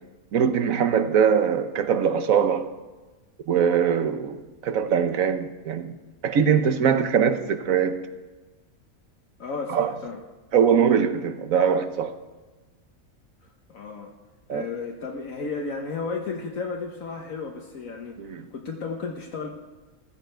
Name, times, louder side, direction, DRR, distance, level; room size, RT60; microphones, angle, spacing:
voice 1, 0.3-2.7 3.5-6.0 6.2-8.0 9.7-10.0 10.5-12.1 14.5-14.7 18.2-18.5, right 7 dB, 65° right, 1.4 m, -22 dB
voice 2, 9.4-10.2 13.7-14.1 14.5-18.2 18.5-19.5, left 4 dB, 65° left, 1.5 m, -33 dB
15.5 x 14.5 x 4.6 m
omnidirectional pair, 1.6 m